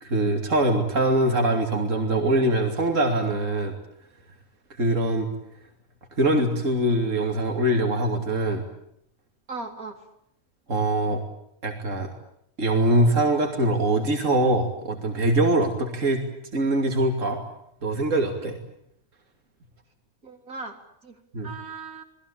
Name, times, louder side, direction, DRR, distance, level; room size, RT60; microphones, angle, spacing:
voice 1, 0.0-3.7 4.8-5.3 6.2-8.6 10.7-11.2 11.6-12.1 12.6-16.2 16.5-17.4 17.8-18.6 21.3-21.5, right 1 dB, 60° right, 3 dB, 3.2 m, -23 dB
voice 2, 9.5-10.1 20.2-22.0, right 3 dB, 80° right, 3 dB, 4.2 m, -38 dB
28.5 x 20.5 x 8.7 m, 0.75 s
omnidirectional pair, 1.5 m